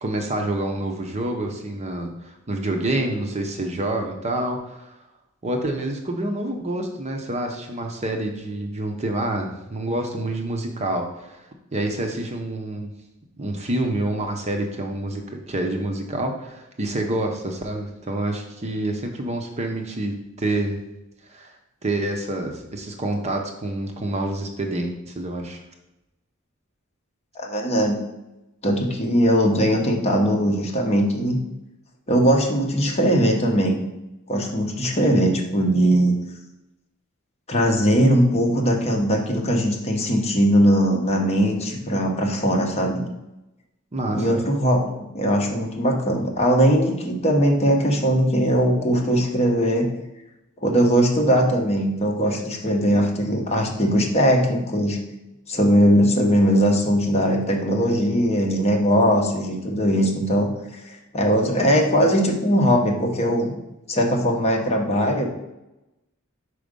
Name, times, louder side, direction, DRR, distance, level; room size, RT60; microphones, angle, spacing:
voice 1, 0.0-4.9 5.4-11.4 11.7-12.9 13.4-20.8 21.3-21.5 21.8-25.6 43.9-44.4, right 1 dB, 30° right, 3 dB, 0.7 m, -27 dB
voice 2, 27.3-28.0 28.6-31.4 32.1-33.8 34.3-36.1 37.5-43.0 44.1-49.9 50.6-55.0 55.5-63.5 63.9-65.3, equal, 30° left, 1 dB, 1.1 m, -20 dB
5.0 x 4.9 x 5.2 m, 0.92 s
head